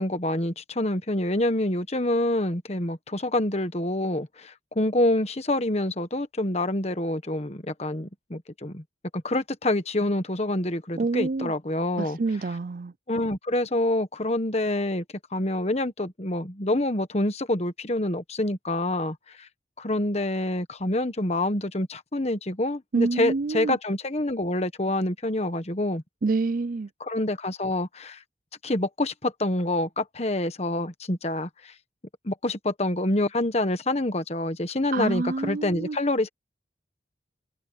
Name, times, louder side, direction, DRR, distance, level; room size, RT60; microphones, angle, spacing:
voice 1, 0.0-8.8 9.1-12.2 13.1-15.0 15.3-19.5 19.8-26.0 27.0-28.2 28.6-31.7 32.2-36.3, left 1 dB, 35° left, 1.3 m, -27 dB
voice 2, 10.9-11.5 12.0-12.9 22.9-23.8 26.2-26.9 34.9-36.0, right 3 dB, 45° right, 0.4 m, -27 dB
head